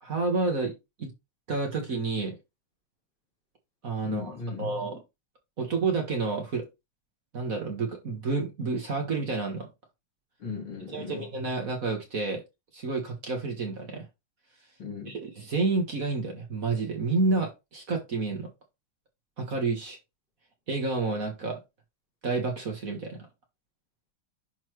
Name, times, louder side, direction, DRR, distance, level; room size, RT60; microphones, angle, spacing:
voice 1, 0.0-0.7 1.0-1.1 1.5-2.4 3.8-4.3 4.6-5.0 5.6-6.7 7.3-9.7 10.9-12.4 12.7-14.0 15.5-18.5 19.4-20.0 20.7-21.6 22.2-23.2, right 3 dB, 45° right, 1.9 m, -29 dB
voice 2, 4.0-4.9 10.4-11.3 14.8-15.2, left 4 dB, 70° left, 4.0 m, -37 dB
10.5 x 4.3 x 3.2 m
omnidirectional pair, 2.3 m